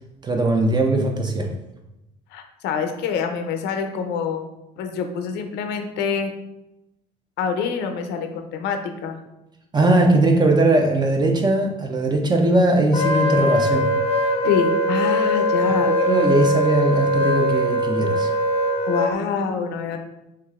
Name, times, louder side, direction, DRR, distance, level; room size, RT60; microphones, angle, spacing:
voice 1, 0.2-1.5 9.7-13.9 16.0-18.3, right 2 dB, 25° right, 3 dB, 0.6 m, -19 dB
voice 2, 2.3-4.4 4.8-6.3 7.4-9.2 14.4-15.9 18.9-20.0, left 6 dB, 85° left, 6 dB, 0.6 m, -26 dB
Wind instrument woodwind instrument, 12.9-19.1, left 1 dB, 35° left, 0.6 m, -21 dB
4.7 x 3.2 x 2.4 m, 0.92 s
cardioid pair, 110°, 17 cm